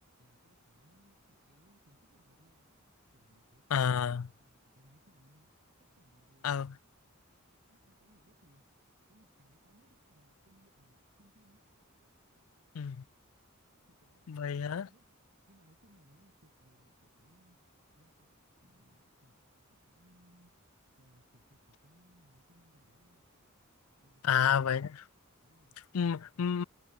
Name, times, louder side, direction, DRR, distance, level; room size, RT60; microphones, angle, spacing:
voice 1, 0.2-2.7 3.1-5.5 5.8-6.7 7.6-8.6 9.1-11.6 13.9-14.4 14.6-15.0 15.5-17.6 18.0-18.3 18.6-19.4 19.7-20.5 21.0-23.3 24.0-24.8 25.4-25.9, equal, 50° right, 5.7 m, -66 dB
voice 2, 3.7-4.3 6.4-6.7 12.7-13.0 14.3-14.9 24.2-24.9 25.9-26.6, left 7 dB, 90° left, 0.5 m, -29 dB
head